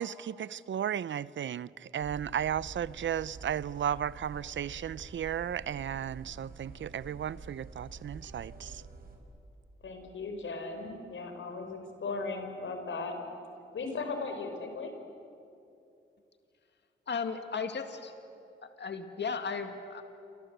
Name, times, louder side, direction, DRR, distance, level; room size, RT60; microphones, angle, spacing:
voice 1, 0.0-8.8, right 9 dB, 70° right, 0.6 m, -34 dB
sound 1, 2.0-9.2, right 3 dB, 50° right, 5.9 m, -48 dB
voice 2, 9.8-13.2 13.7-14.9, left 3 dB, 80° left, 4.5 m, -37 dB
voice 3, 17.1-18.1 18.6-20.0, left 5 dB, 60° left, 2.1 m, -35 dB
29.0 x 25.5 x 8.0 m
cardioid pair, 65°, 20 cm